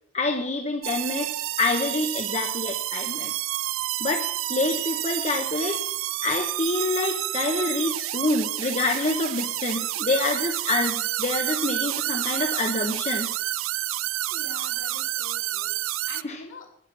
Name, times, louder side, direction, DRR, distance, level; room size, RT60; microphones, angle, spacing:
voice 1, 0.1-3.3 4.0-5.8 6.2-13.3 16.2-16.4, left 3 dB, 35° left, 3 dB, 0.9 m, -27 dB
sound 1, 0.8-16.2, right 15 dB, 80° right, 0.4 m, -29 dB
voice 2, 14.3-15.7 16.1-16.7, left 3 dB, 70° left, -1 dB, 3.3 m, -44 dB
12.0 x 9.7 x 5.9 m, 0.69 s
head